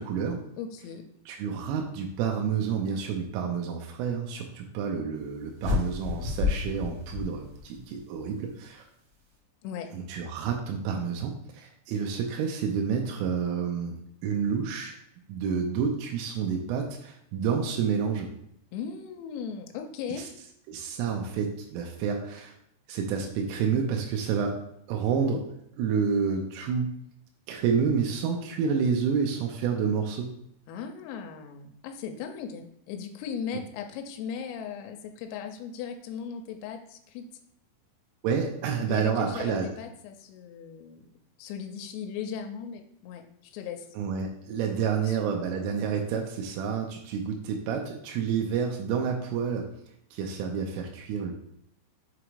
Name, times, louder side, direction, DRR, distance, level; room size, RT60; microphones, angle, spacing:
voice 1, 0.0-0.4 1.3-8.8 9.9-15.0 15.3-18.3 20.2-20.3 20.7-22.6 22.9-24.5 24.9-25.4 25.8-26.9 27.5-30.3 38.2-39.7 44.0-49.7 50.1-51.3, right 6 dB, 90° right, 1 dB, 3.2 m, -29 dB
voice 2, 0.6-1.1 9.6-9.9 18.7-20.3 30.7-37.2 38.9-41.1 41.4-43.9 45.1-45.3, left 7 dB, 90° left, 4 dB, 3.3 m, -38 dB
sound 1, 5.6-8.0, left 5 dB, 55° right, 1.8 m, -30 dB
7.5 x 3.0 x 4.8 m, 0.72 s
omnidirectional pair, 5.8 m